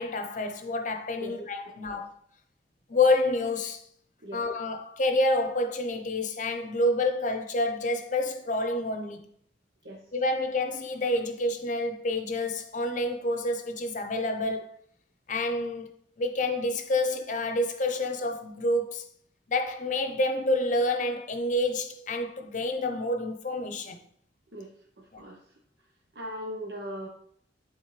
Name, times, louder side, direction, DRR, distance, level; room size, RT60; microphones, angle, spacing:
voice 1, 0.0-2.1 2.9-3.8 4.3-9.2 10.1-14.7 15.3-15.9 16.2-19.0 19.5-24.0 25.1-25.2, left 2 dB, 45° left, 0.8 m, -28 dB
voice 2, 24.5-25.4 26.1-27.1, equal, 65° right, 1.0 m, -39 dB
10.5 x 4.0 x 3.3 m
head